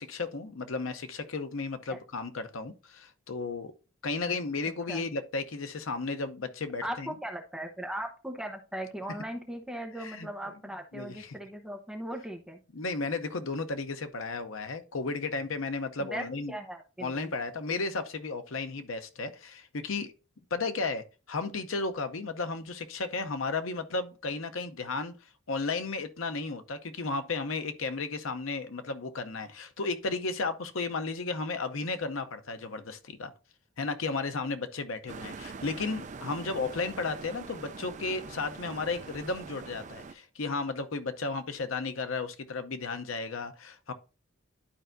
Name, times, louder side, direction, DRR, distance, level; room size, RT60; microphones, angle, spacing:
voice 1, 0.0-3.7 4.0-7.1 10.0-10.3 10.9-11.4 12.7-16.5 17.0-20.1 20.5-25.1 25.5-33.3 33.8-43.9, left 3 dB, 80° left, 0.8 m, -34 dB
voice 2, 6.8-12.6 16.0-17.3, right 1 dB, 5° right, 0.8 m, -38 dB
sound 1, 35.1-40.1, right 4 dB, 35° right, 0.4 m, -43 dB
11.5 x 4.5 x 2.6 m
head